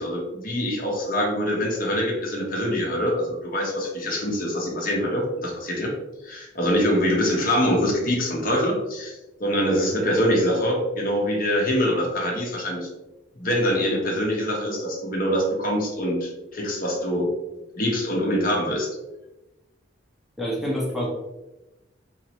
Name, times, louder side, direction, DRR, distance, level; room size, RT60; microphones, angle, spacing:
voice 1, 0.0-5.9 6.2-12.9 13.4-17.3 17.8-18.9, equal, 50° left, -1 dB, 1.2 m, -24 dB
voice 2, 20.4-21.1, equal, ahead, -4 dB, 0.7 m, -26 dB
4.6 x 3.1 x 3.0 m, 1.0 s
head